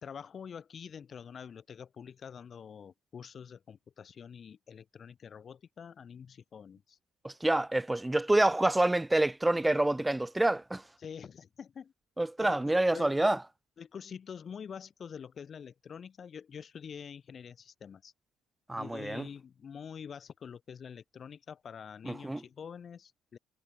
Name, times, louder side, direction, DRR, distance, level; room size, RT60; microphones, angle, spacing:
voice 1, 0.0-7.0 11.0-11.9 12.4-13.2 13.8-18.1 18.8-23.4, left 7 dB, 40° left, 2.8 m, -46 dB
voice 2, 7.2-10.8 12.2-13.4 18.7-19.3 22.1-22.4, right 1 dB, 10° right, 0.6 m, -27 dB
cardioid pair, 105°, 0 cm